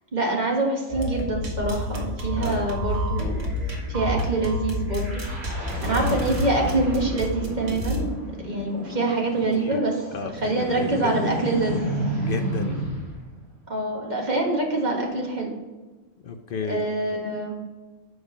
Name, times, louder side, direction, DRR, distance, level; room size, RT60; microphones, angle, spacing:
voice 1, 0.1-3.4 3.9-5.2 5.8-8.1 8.4-9.9 10.4-11.9 13.7-15.5 16.7-17.6, right 2 dB, 40° right, 0 dB, 1.6 m, -25 dB
sound 1, 0.9-8.0, equal, 90° right, 1.7 m, -29 dB
voice 2, 2.4-2.7 5.9-6.2 9.6-9.8 10.1-11.4 12.2-12.8 16.2-16.9, left 5 dB, 60° left, 6 dB, 0.6 m, -32 dB
sound 2, 3.2-4.3 4.8-13.2, equal, 60° right, 2.9 m, -33 dB
8.0 x 5.1 x 5.0 m, 1.3 s
omnidirectional pair, 1.2 m